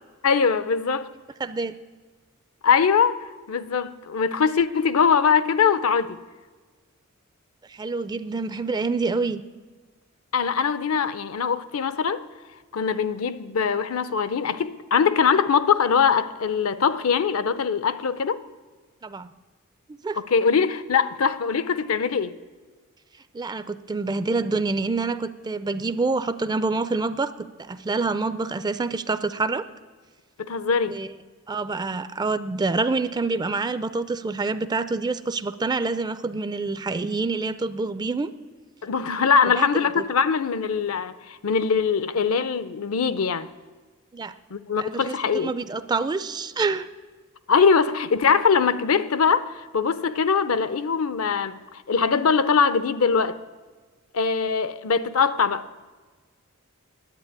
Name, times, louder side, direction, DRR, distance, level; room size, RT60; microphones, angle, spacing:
voice 1, 0.2-1.1 2.6-6.2 10.3-12.2 12.7-18.4 20.2-22.4 30.4-31.0 38.8-43.5 44.5-45.5 47.5-53.4 54.1-55.8, left 6 dB, 65° left, 0.5 m, -22 dB
voice 2, 1.4-1.8 7.7-9.4 19.0-19.3 19.9-20.2 23.3-29.7 30.9-31.1 31.5-38.3 39.5-39.7 40.0-40.1 44.1-44.3 44.8-46.9, right 3 dB, 20° right, 0.3 m, -27 dB
10.5 x 8.5 x 9.5 m
head